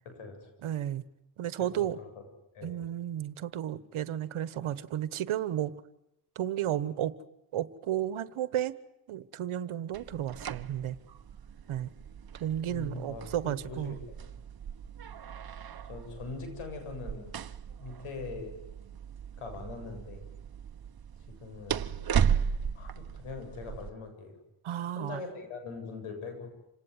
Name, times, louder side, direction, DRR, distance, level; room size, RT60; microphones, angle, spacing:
voice 1, 0.0-0.5 1.6-2.1 2.5-2.8 12.7-14.0 15.9-17.3 17.8-18.6 19.4-20.3 21.3-21.9 22.7-24.4 24.9-26.5, left 4 dB, 90° left, 6 dB, 7.6 m, -42 dB
voice 2, 0.6-1.0 1.4-2.0 2.6-5.7 6.3-7.1 7.5-8.7 9.1-11.0 11.7-11.9 12.4-14.0 24.6-25.2, right 11 dB, 80° right, 15 dB, 1.4 m, -33 dB
sound 1, 9.9-23.9, right 8 dB, 45° right, 1.3 m, -36 dB
27.5 x 18.5 x 9.6 m, 0.84 s
cardioid pair, 70°, 49 cm